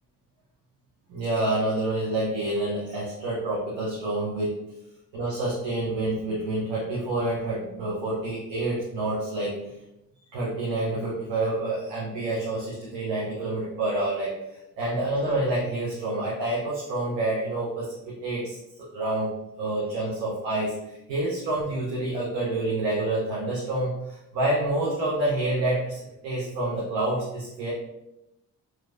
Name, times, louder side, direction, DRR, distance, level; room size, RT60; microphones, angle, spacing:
voice 1, 1.1-4.6 5.1-9.6 10.3-19.3 19.6-27.7, right 2 dB, 85° right, -6 dB, 0.9 m, -28 dB
4.5 x 3.1 x 2.5 m, 0.89 s
hypercardioid pair, 40°, 42 cm